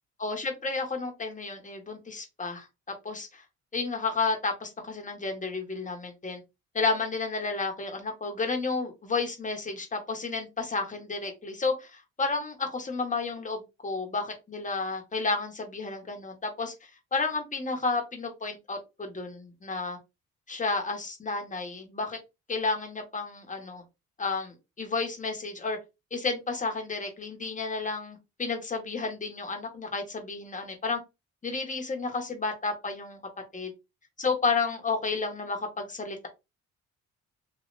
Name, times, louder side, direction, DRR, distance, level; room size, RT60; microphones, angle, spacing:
voice 1, 0.2-2.7 3.0-3.4 3.7-6.4 6.7-16.7 17.1-20.0 20.5-22.2 22.5-23.8 24.2-25.8 26.1-31.0 31.4-33.2 33.5-33.7 34.2-36.3, left 4 dB, 25° left, 3 dB, 1.2 m, -31 dB
3.2 x 2.7 x 2.5 m, 0.24 s
cardioid pair, 90°, 30 cm